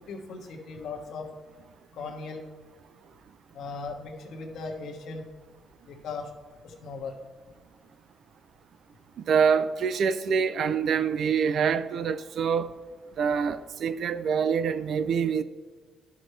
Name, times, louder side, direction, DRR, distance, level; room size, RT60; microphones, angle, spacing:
voice 1, 0.1-1.3 1.9-2.4 3.5-5.2 5.8-6.3 6.6-7.2, left 4 dB, 70° left, 1.4 m, -38 dB
voice 2, 9.3-12.7 13.2-15.4, right 6 dB, 65° right, 0.5 m, -25 dB
12.5 x 6.0 x 3.3 m
cardioid pair, 90°, 0 cm